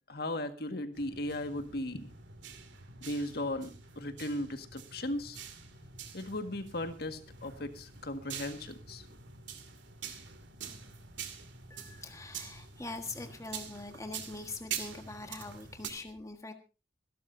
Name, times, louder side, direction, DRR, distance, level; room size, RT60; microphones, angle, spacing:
voice 1, 0.1-2.1 3.0-5.4 6.1-9.0, left 1 dB, 60° left, 8 dB, 1.8 m, -37 dB
sound 1, 0.9-15.9, right 7 dB, 85° right, 2.5 m, -46 dB
voice 2, 11.7-16.5, left 3 dB, 20° left, 6 dB, 1.5 m, -43 dB
25.5 x 12.5 x 2.7 m, 0.30 s
head